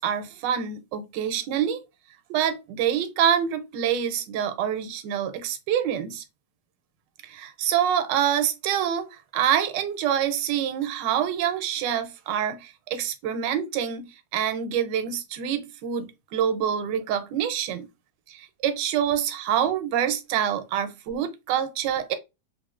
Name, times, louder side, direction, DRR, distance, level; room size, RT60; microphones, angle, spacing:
voice 1, 0.0-1.8 2.3-6.2 7.2-9.1 9.3-14.1 14.3-17.9 18.3-22.2, right 9 dB, 80° right, 1.2 m, -26 dB
3.5 x 2.5 x 2.3 m
omnidirectional pair, 1.9 m